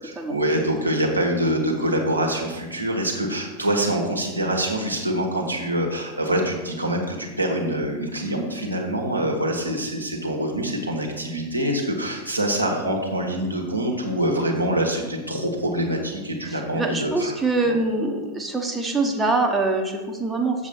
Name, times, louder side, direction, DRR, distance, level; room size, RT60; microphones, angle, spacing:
voice 1, 0.0-17.4 17.6-17.8, right 1 dB, 85° right, 0 dB, 1.2 m, -25 dB
voice 2, 16.5-20.7, right 3 dB, 10° right, 2 dB, 1.0 m, -24 dB
7.2 x 7.1 x 4.4 m, 1.3 s
figure-of-eight pair, 90°, 0 cm